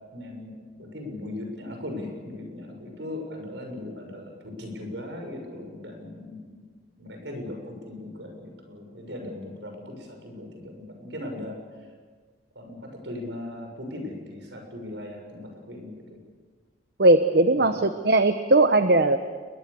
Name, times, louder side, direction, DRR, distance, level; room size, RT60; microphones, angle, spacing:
voice 1, 0.1-0.5 0.8-6.6 7.0-11.6 12.6-16.2 17.5-17.8, left 1 dB, 75° right, 3 dB, 7.0 m, -38 dB
voice 2, 17.0-19.2, right 2 dB, 55° right, 8 dB, 1.0 m, -19 dB
29.5 x 22.0 x 7.0 m, 1.5 s
head